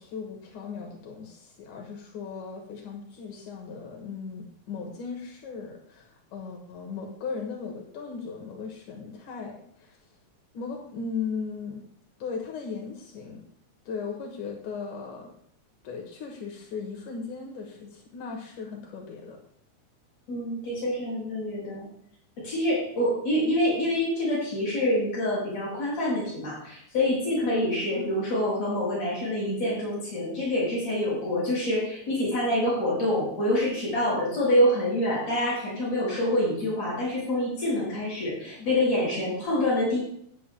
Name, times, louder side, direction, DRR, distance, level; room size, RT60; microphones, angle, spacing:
voice 1, 0.0-10.0 10.5-11.8 12.2-13.4 13.9-15.3 15.8-19.4 27.9-28.2, left 5 dB, 80° left, 0 dB, 2.9 m, -37 dB
voice 2, 20.3-21.9 22.4-40.0, left 1 dB, 60° left, -6 dB, 6.5 m, -26 dB
18.0 x 9.0 x 2.3 m, 0.66 s
omnidirectional pair, 3.5 m